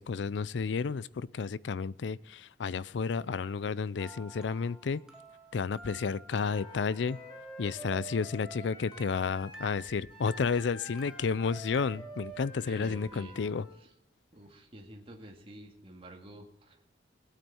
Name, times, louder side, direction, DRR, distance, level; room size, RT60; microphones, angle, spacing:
voice 1, 0.0-5.0 5.5-7.2 7.6-13.7, left 5 dB, 80° left, 20 dB, 0.4 m, -31 dB
sound 1, 4.0-11.8, equal, 5° right, 1.2 m, -52 dB
Wind instrument woodwind instrument, 6.3-13.8, equal, 30° left, 3.7 m, -48 dB
voice 2, 12.7-13.4 13.8-13.9 14.3-16.8, right 1 dB, 30° right, 1 dB, 2.2 m, -49 dB
19.0 x 9.0 x 4.4 m, 0.76 s
head